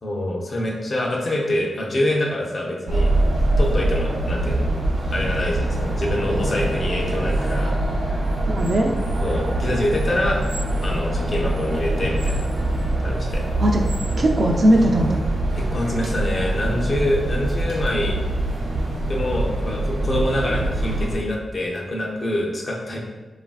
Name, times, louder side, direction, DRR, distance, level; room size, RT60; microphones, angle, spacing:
voice 1, 0.0-3.1 3.6-4.7 5.1-7.8 9.2-10.4 10.8-12.5 13.0-13.4 15.7-18.2 19.1-23.0, left 1 dB, 45° left, -2 dB, 0.5 m, -25 dB
sound 1, 2.9-21.1, right 1 dB, 85° right, 0.8 m, -24 dB
voice 2, 8.5-9.0 11.2-11.3 13.6-13.9 14.2-15.2, right 1 dB, 45° right, 1 dB, 0.3 m, -19 dB
3.2 x 2.5 x 2.3 m, 1.3 s
wide cardioid pair, 95°, 0 cm